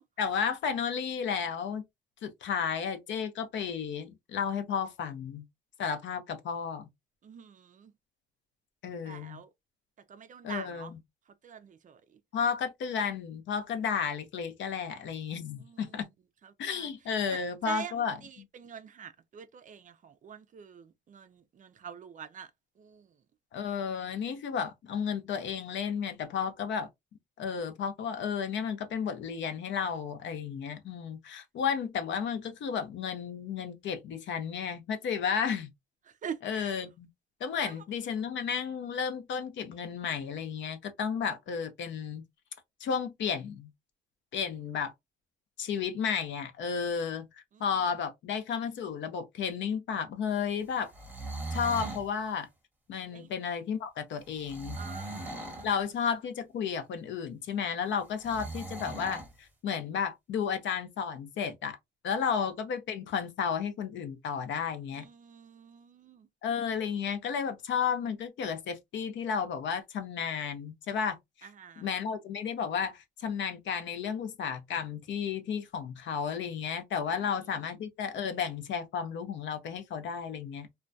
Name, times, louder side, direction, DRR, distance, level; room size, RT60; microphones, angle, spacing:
voice 1, 0.2-1.8 2.2-5.4 5.8-6.9 8.8-9.4 10.4-11.0 12.3-16.0 16.6-18.5 23.5-26.9 27.4-35.7 36.4-37.1 37.4-42.2 42.8-43.7 44.3-44.9 45.6-47.3 47.6-50.9 51.5-52.5 52.9-54.8 55.6-61.8 62.0-65.0 66.4-71.5 71.8-80.7, left 7 dB, 70° left, 0.6 m, -33 dB
voice 2, 7.2-7.9 9.0-9.5 10.1-10.9 11.4-12.2 15.6-16.1 16.4-16.9 17.3-17.4 17.6-22.5 22.8-23.1 36.1-36.8 37.6-37.8 47.5-47.9 53.1-53.3 54.7-55.7 64.9-66.3 71.4-72.0 77.1-77.6, right 7 dB, 40° right, 0.4 m, -46 dB
sound 1, 50.8-52.1 54.4-55.7 58.2-59.3, right 2 dB, 10° right, 0.8 m, -39 dB
2.2 x 2.2 x 2.5 m
cardioid pair, 90°, 20 cm